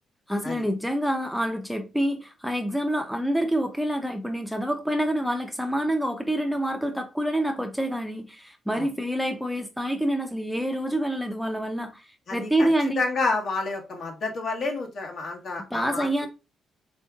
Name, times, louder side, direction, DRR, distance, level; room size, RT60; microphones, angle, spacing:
voice 1, 0.3-13.0 15.7-16.3, right 1 dB, ahead, 0.5 m, -27 dB
voice 2, 12.3-12.7 13.0-16.3, left 3 dB, 60° left, 1.0 m, -29 dB
3.5 x 2.7 x 2.2 m
cardioid pair, 90°, 0 cm